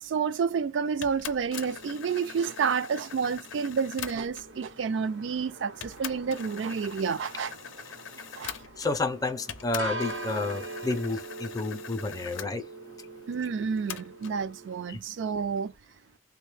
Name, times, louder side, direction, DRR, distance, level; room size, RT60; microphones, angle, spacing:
voice 1, 0.0-7.5 8.4-8.5 13.3-15.7, right 6 dB, 70° right, 0.4 m, -30 dB
sound 1, 1.0-4.6 5.3-5.4 5.8-9.1 9.5-12.5 13.9-14.4, left 8 dB, 80° left, 0.5 m, -42 dB
sound 2, 1.5-14.9, right 2 dB, 90° right, 0.9 m, -43 dB
voice 2, 8.8-12.7 14.9-15.0, left 3 dB, 20° left, 0.4 m, -30 dB
3.4 x 2.2 x 3.2 m
head